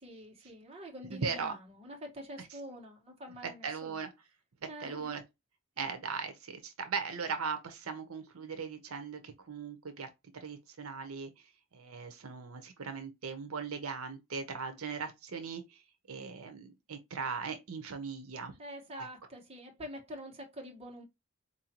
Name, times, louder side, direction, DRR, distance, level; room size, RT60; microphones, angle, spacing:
voice 1, 0.0-4.0 4.7-5.1 5.8-5.9 18.6-21.0, equal, 30° right, 1.3 m, -46 dB
voice 2, 1.1-1.6 2.4-2.5 3.4-4.1 4.6-5.2 5.8-10.1 10.4-11.3 11.7-15.6 16.1-18.5 19.0-19.1, right 5 dB, 80° right, 0.7 m, -39 dB
4.3 x 2.7 x 2.9 m
head